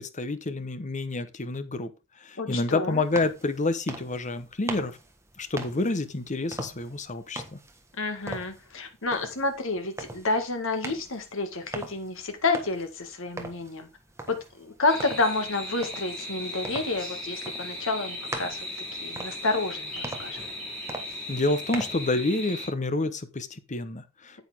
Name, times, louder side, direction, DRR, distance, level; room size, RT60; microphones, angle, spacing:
voice 1, 0.0-1.9 2.2-5.0 5.4-7.6 21.3-24.4, left 2 dB, 35° left, 0.9 m, -28 dB
voice 2, 2.4-3.0 8.0-13.9 14.3-18.6 19.0-19.9 20.2-20.4, left 3 dB, 65° left, 2.0 m, -29 dB
sound 1, 2.9-22.1, right 2 dB, 15° right, 1.4 m, -42 dB
sound 2, 14.9-22.7, left 1 dB, ahead, 6.7 m, -37 dB
9.1 x 8.2 x 3.5 m
head